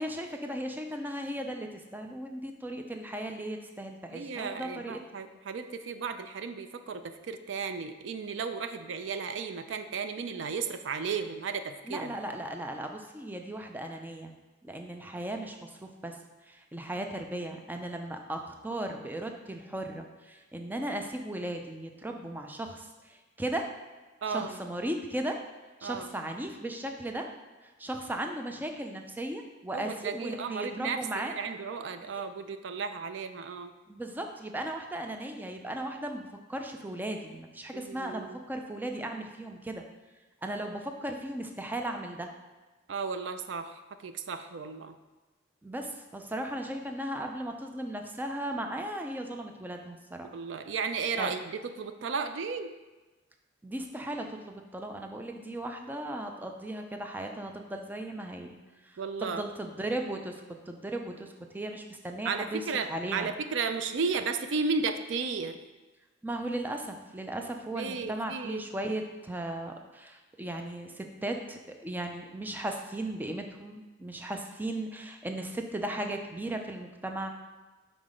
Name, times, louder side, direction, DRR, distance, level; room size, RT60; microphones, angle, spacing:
voice 1, 0.0-5.0 11.9-14.3 14.6-16.2 16.4-23.7 24.3-25.4 25.8-27.3 27.6-31.3 33.9-39.8 40.4-42.3 45.6-50.4 51.2-51.3 53.6-58.6 58.8-60.4 60.7-63.3 66.2-77.3, right 1 dB, 10° right, 4 dB, 0.4 m, -36 dB
voice 2, 4.1-12.2 17.0-17.1 24.2-24.6 25.8-26.1 29.7-33.7 37.7-38.4 42.9-45.0 50.3-52.7 59.0-59.4 62.2-65.6 67.8-68.6, right 5 dB, 70° right, 9 dB, 0.4 m, -34 dB
5.7 x 4.0 x 5.0 m, 1.2 s
head